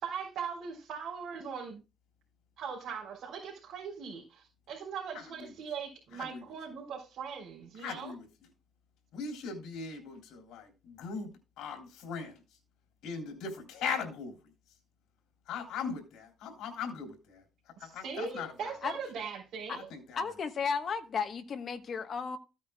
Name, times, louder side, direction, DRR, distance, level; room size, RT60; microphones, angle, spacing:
voice 1, 0.0-1.8 2.6-8.1 17.8-19.9, right 6 dB, 50° right, 3.9 m, -40 dB
voice 2, 7.8-8.3 9.1-11.3 11.6-12.4 13.0-14.5 15.5-17.4 17.8-18.7 19.7-20.3, left 5 dB, 90° left, 3.3 m, -39 dB
voice 3, 20.2-22.4, left 5 dB, 35° left, 1.1 m, -34 dB
15.0 x 8.5 x 2.3 m
cardioid pair, 175°, 0 cm